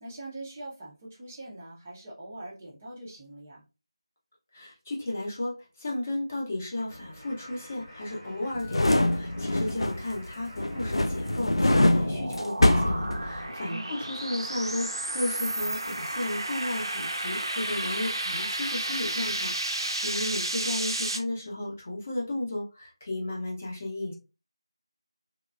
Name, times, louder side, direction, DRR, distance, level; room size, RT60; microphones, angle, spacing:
voice 1, 0.0-3.6 13.7-14.0, right 2 dB, 10° right, -6 dB, 0.5 m, -42 dB
voice 2, 4.5-24.1, left 1 dB, 25° left, -3 dB, 0.7 m, -34 dB
sound 1, 6.8-11.4 11.7-13.6, equal, 5° left, 1.0 m, -50 dB
sound 2, 8.5-10.2 10.6-13.7 14.0-14.1, left 1 dB, 65° left, 0.4 m, -24 dB
sound 3, 11.1-21.2, right 1 dB, 55° right, 0.5 m, -32 dB
3.0 x 2.2 x 2.4 m, 0.30 s
figure-of-eight pair, 175°, 3 cm